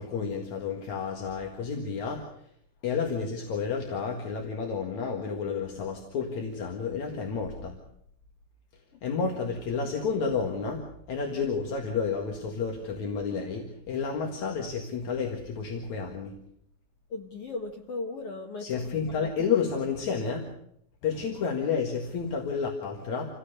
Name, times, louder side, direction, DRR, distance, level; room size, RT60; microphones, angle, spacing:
voice 1, 0.0-2.5 2.8-7.8 9.0-16.4 18.6-20.5 21.0-23.3, left 5 dB, 50° left, 2 dB, 2.8 m, -31 dB
voice 2, 17.1-19.1, left 3 dB, 65° left, 1 dB, 1.4 m, -37 dB
27.5 x 16.0 x 6.7 m, 0.71 s
omnidirectional pair, 4.8 m